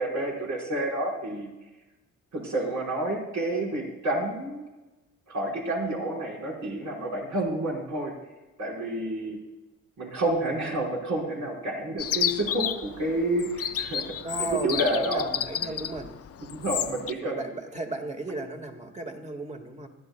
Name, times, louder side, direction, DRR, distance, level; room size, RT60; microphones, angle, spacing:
voice 1, 0.0-1.5 2.3-4.6 5.3-8.1 8.6-9.4 10.0-14.0 14.4-15.3 15.6-15.7 16.6-17.6, right 1 dB, 70° right, -3 dB, 5.2 m, -29 dB
Chirp tweet, 12.0-17.1, left 9 dB, 50° left, 0.6 m, -31 dB
voice 2, 14.2-16.2 17.2-19.9, right 2 dB, 20° right, 4 dB, 1.9 m, -35 dB
26.5 x 11.0 x 2.3 m, 1.1 s
cardioid pair, 90°, 30 cm